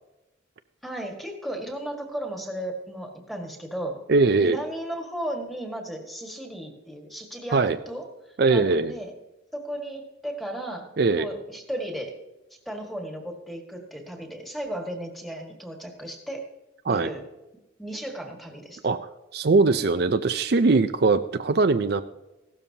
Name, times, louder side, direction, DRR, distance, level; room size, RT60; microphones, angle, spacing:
voice 1, 0.8-4.0 4.4-9.1 9.5-10.9 11.1-12.2 12.6-16.5 16.9-17.2 17.8-18.8, right 1 dB, ahead, 2 dB, 1.7 m, -35 dB
voice 2, 4.1-4.6 7.5-7.8 8.4-8.9 11.0-11.3 16.9-17.1 18.8-19.0 19.3-22.0, right 3 dB, 55° right, 9 dB, 0.5 m, -21 dB
16.0 x 12.5 x 2.8 m, 1.0 s
head